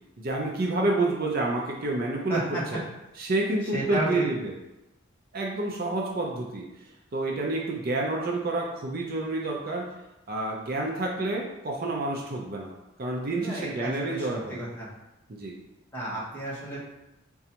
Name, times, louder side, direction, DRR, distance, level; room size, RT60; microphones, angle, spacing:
voice 1, 0.2-2.4 2.7-2.8 3.2-4.5 5.3-6.7 7.1-9.9 10.3-12.7 13.0-14.6 15.4-15.6, right 2 dB, 45° right, -1 dB, 0.5 m, -29 dB
voice 2, 2.3-2.6 3.7-4.2 13.3-14.9 15.9-16.8, right 1 dB, 10° left, -7 dB, 1.0 m, -32 dB
5.0 x 2.3 x 2.8 m, 0.95 s
head